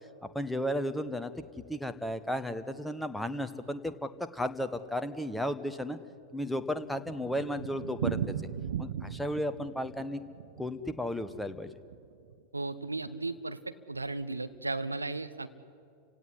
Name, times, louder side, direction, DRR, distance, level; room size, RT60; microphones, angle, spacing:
voice 1, 0.3-1.3 1.7-6.0 6.3-8.3 8.8-10.2 10.6-11.7, equal, 5° left, 9 dB, 1.2 m, -34 dB
Thunder, 6.1-12.4 12.6-12.7 13.0-13.1 13.4-13.5 14.0-14.4, right 8 dB, 60° right, 0.9 m, -38 dB
voice 2, 12.5-13.6 13.9-15.5, right 2 dB, 80° right, 10 dB, 1.1 m, -35 dB
29.5 x 17.0 x 10.0 m, 2.4 s
figure-of-eight pair, 90°, 0 cm